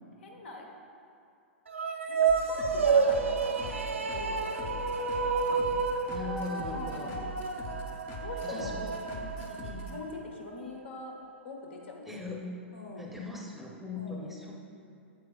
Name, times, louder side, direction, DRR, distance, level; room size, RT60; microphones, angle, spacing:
voice 1, 0.2-0.7 2.1-5.4 6.7-7.5 8.2-8.8 9.0-9.3 9.7-11.2 11.4-12.1 12.7-13.1 13.9-14.5, left 3 dB, 65° left, 1 dB, 1.2 m, -43 dB
sound 1, 1.7-10.2, right 5 dB, 80° right, 0.5 m, -30 dB
sound 2, 2.3-10.0, right 1 dB, 35° left, 0.8 m, -42 dB
voice 2, 6.1-7.1 8.4-8.9 9.4-9.9 12.1-12.5 13.0-14.5, left 3 dB, 5° right, -1 dB, 0.8 m, -40 dB
8.7 x 7.9 x 2.4 m, 2.5 s
figure-of-eight pair, 105°, 7 cm